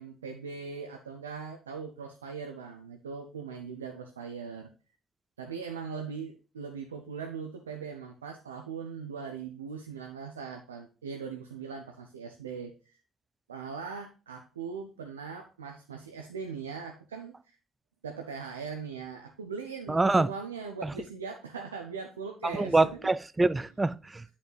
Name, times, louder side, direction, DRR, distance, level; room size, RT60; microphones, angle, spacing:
voice 1, 0.0-4.7 5.4-13.0 13.5-17.6 18.0-23.1, right 5 dB, 90° right, 0.5 m, -40 dB
voice 2, 19.9-20.3 20.8-20.9 22.4-24.2, right 2 dB, 20° right, 0.4 m, -25 dB
9.9 x 4.2 x 3.2 m
hypercardioid pair, 45°, 0 cm